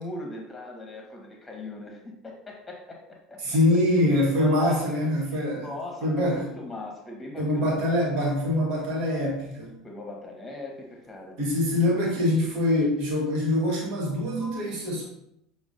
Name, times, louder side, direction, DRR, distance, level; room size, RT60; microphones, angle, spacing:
voice 1, 0.0-3.4 4.1-5.0 5.3-8.1 9.8-11.4, left 2 dB, 15° left, 0 dB, 1.1 m, -39 dB
voice 2, 3.4-5.7 6.0-6.4 7.4-9.8 11.4-15.0, left 1 dB, 55° right, -1 dB, 1.2 m, -24 dB
6.0 x 2.1 x 2.5 m, 0.78 s
figure-of-eight pair, 70°, 0 cm